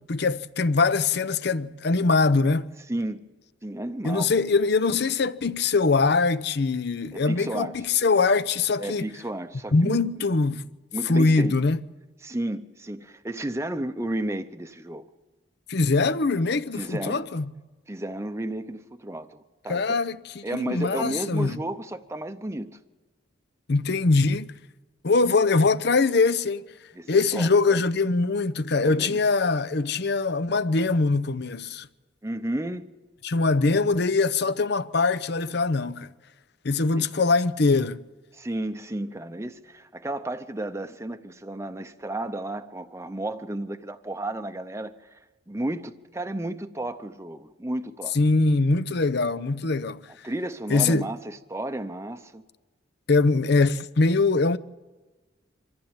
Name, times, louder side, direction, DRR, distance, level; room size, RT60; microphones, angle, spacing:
voice 1, 0.0-2.7 4.0-9.1 9.7-10.7 11.1-11.8 15.7-17.5 19.7-21.6 23.7-24.5 25.0-26.7 27.1-31.9 33.2-36.1 36.6-38.1 48.1-50.0 50.7-51.1 53.1-54.6, left 3 dB, 60° left, 0.7 m, -22 dB
voice 2, 2.9-3.2 3.6-4.3 7.1-7.8 8.8-10.1 10.9-11.6 12.2-15.1 16.7-17.2 17.9-20.0 20.4-22.8 26.9-27.8 28.8-29.2 32.2-32.9 37.0-37.1 38.3-45.2 45.5-48.2 50.2-52.4, right 1 dB, 15° right, 0.7 m, -33 dB
24.5 x 15.0 x 8.9 m
head